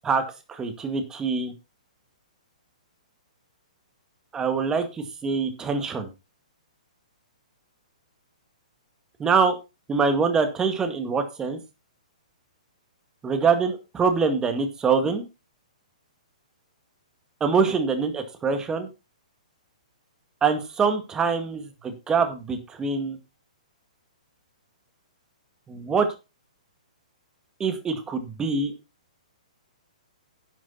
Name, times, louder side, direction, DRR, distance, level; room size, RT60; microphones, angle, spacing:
voice 1, 0.5-1.5 4.3-4.9 5.2-6.1 9.2-9.6 9.9-11.6 13.2-15.2 17.4-18.9 20.4-23.2 25.7-26.1 27.6-28.7, right 5 dB, 15° right, 7 dB, 2.0 m, -24 dB
11.0 x 7.5 x 4.1 m, 0.28 s
hypercardioid pair, 125°, 4 cm